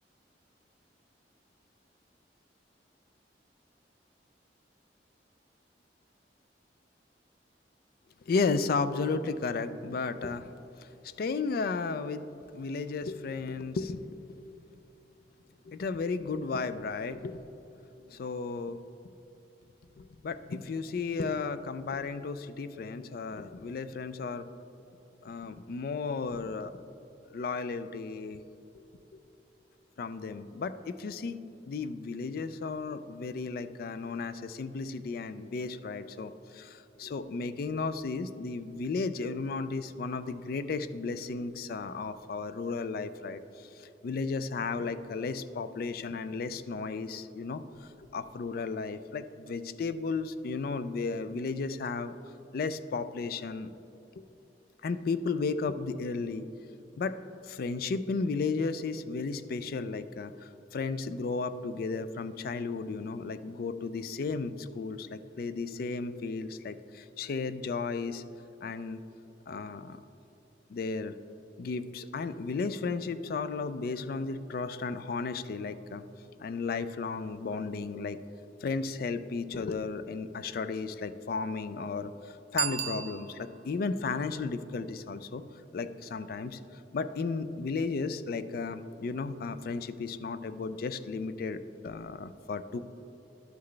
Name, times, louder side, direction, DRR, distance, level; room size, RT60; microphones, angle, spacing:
voice 1, 8.3-10.5 10.8-12.3 12.5-14.4 15.7-17.4 18.1-19.1 20.0-24.5 25.2-26.7 27.3-28.4 30.0-31.4 31.7-52.1 52.5-53.7 54.2-54.3 54.8-56.4 57.0-57.2 57.4-68.2 68.6-69.0 69.5-70.0 70.7-71.1 71.6-76.0 76.4-78.2 78.6-85.4 85.7-92.8, left 4 dB, 55° left, 12 dB, 0.3 m, -34 dB
Bicycle bell, 82.5-83.7 89.2-89.3, right 11 dB, 65° right, 0.5 m, -34 dB
11.5 x 5.9 x 3.2 m, 2.9 s
head